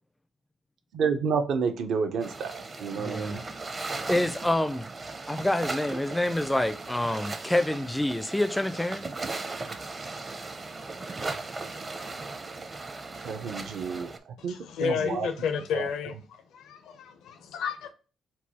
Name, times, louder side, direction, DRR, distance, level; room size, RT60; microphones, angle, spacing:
voice 1, 0.9-3.4 13.2-14.1 14.4-15.3 15.7-15.9, right 6 dB, 70° right, 0.7 m, -30 dB
sound 1, 2.2-14.2, right 3 dB, 35° right, 0.6 m, -37 dB
voice 2, 3.0-3.4 4.1-4.9 5.3-9.1, left 1 dB, 10° left, 0.4 m, -27 dB
voice 3, 14.4-16.2 16.5-17.9, left 6 dB, 80° left, 0.7 m, -31 dB
4.5 x 2.3 x 4.2 m
cardioid pair, 90°, 0 cm